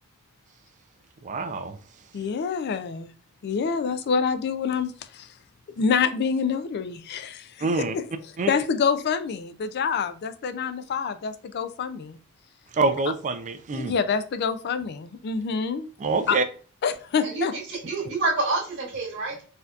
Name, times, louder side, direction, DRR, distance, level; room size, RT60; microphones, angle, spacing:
voice 1, 1.2-1.8 7.6-7.9 8.4-8.5 12.8-13.9 16.0-16.4, right 3 dB, 35° right, 0.4 m, -25 dB
voice 2, 2.1-3.1 3.4-5.3 5.8-12.2 13.7-15.9 16.3-16.4 16.8-17.5, left 6 dB, 50° left, 0.3 m, -27 dB
voice 3, 17.2-19.4, right 3 dB, 55° right, 1.6 m, -28 dB
4.2 x 2.7 x 2.3 m
head